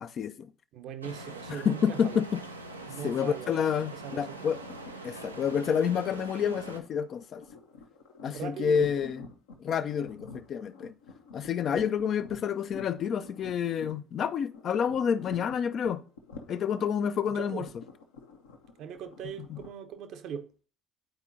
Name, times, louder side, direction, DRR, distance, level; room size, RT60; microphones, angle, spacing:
voice 1, 0.0-0.5 1.5-2.4 3.0-4.6 5.0-7.4 8.2-9.2 9.6-10.9 11.3-16.0 16.5-17.7 19.5-19.6, left 7 dB, 45° left, 0.5 m, -29 dB
voice 2, 0.7-2.2 2.9-3.6 3.9-4.4 8.2-9.0 17.3-17.7 18.8-20.5, right 8 dB, 55° right, 0.8 m, -40 dB
sound 1, 1.0-6.8, right 2 dB, 85° right, 0.5 m, -43 dB
sound 2, 4.5-19.7, left 4 dB, 70° left, 0.9 m, -49 dB
10.5 x 4.4 x 2.7 m
figure-of-eight pair, 55°, 0 cm